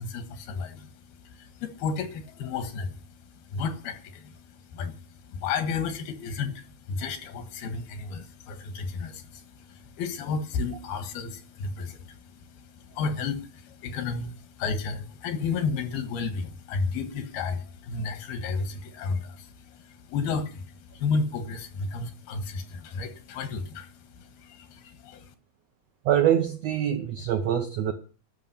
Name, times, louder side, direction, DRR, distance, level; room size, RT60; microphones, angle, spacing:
voice 1, 0.0-25.3, left 4 dB, 90° left, 3.3 m, -33 dB
voice 2, 26.1-27.9, right 10 dB, 85° right, 1.4 m, -24 dB
12.5 x 6.1 x 8.6 m
omnidirectional pair, 4.2 m